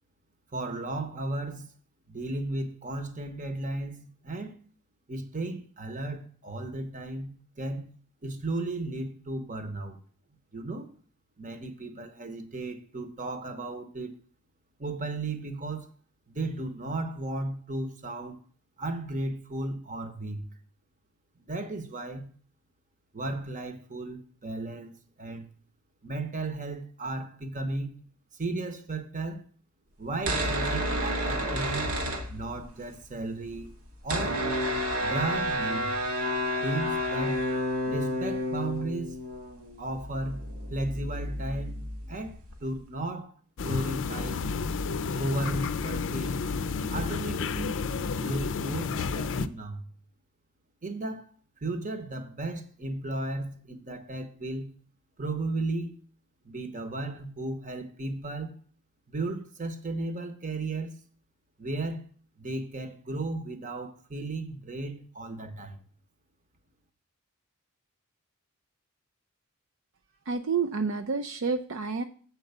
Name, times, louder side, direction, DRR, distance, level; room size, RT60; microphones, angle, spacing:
voice 1, 0.5-1.7 2.1-4.6 5.1-8.0 8.2-10.0 10.5-11.0 11.4-14.2 14.8-15.9 16.3-18.4 18.8-20.5 21.4-22.3 23.1-25.5 26.0-27.9 28.3-29.4 30.0-31.9 32.3-33.7 34.0-34.4 35.0-35.9 36.6-37.5 37.9-39.2 39.8-40.4 40.7-43.4 43.6-44.4 45.1-46.4 46.9-47.8 48.2-49.8 50.8-51.3 51.6-54.7 55.2-56.0 56.4-58.6 59.1-61.0 61.6-62.0 62.4-65.8, right 2 dB, 35° right, 1.0 m, -35 dB
sound 1, 30.1-32.9 33.1-33.2 33.4-42.8, equal, 75° right, 1.5 m, -31 dB
sound 2, 43.6-49.5, left 4 dB, 55° left, 0.5 m, -31 dB
voice 2, 70.3-72.0, right 5 dB, 60° right, 0.5 m, -29 dB
7.8 x 4.6 x 6.7 m
head